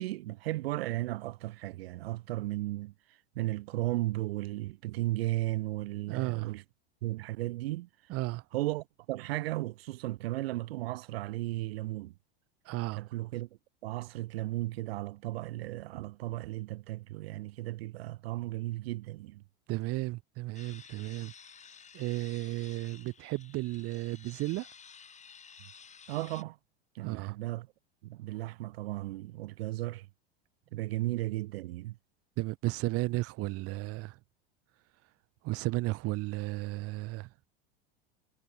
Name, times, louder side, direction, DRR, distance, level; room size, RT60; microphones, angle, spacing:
voice 1, 0.0-2.9 3.4-6.6 7.0-7.9 8.5-12.1 12.9-13.5 13.8-19.4 26.1-26.6 26.9-27.7 28.0-30.1 30.7-32.0, right 17 dB, 75° right, 2.4 m, -35 dB
voice 2, 6.1-6.5 8.1-8.4 12.7-13.0 19.7-21.3 21.9-24.7 27.0-27.4 32.4-34.1 35.4-37.3, right 20 dB, 50° right, 2.1 m, -34 dB
sound 1, 20.5-26.4, left 6 dB, 25° left, 4.4 m, -53 dB
hypercardioid pair, 105°, 30 cm